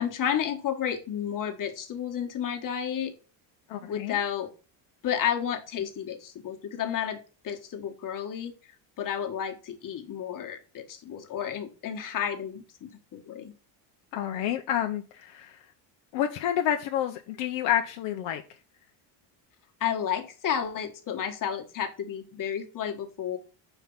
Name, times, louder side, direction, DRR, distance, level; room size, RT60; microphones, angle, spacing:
voice 1, 0.0-3.1 3.8-4.5 5.0-7.2 7.4-8.5 9.0-13.5 19.8-23.4, left 9 dB, 45° left, 1.4 m, -31 dB
voice 2, 3.7-4.2 14.1-15.6 16.1-18.4, left 11 dB, 70° left, 0.8 m, -29 dB
5.8 x 4.6 x 5.3 m
cardioid pair, 120°, 46 cm